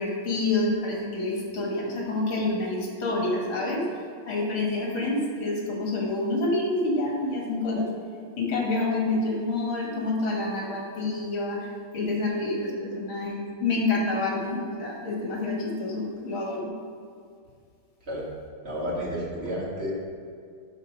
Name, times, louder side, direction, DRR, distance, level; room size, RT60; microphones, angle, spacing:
voice 1, 0.0-3.9 4.3-7.9 8.4-11.6 11.9-16.7, left 2 dB, 75° left, -2 dB, 2.8 m, -27 dB
voice 2, 18.6-19.9, equal, 30° right, -5 dB, 2.2 m, -31 dB
11.5 x 4.1 x 6.5 m, 2.3 s
omnidirectional pair, 2.3 m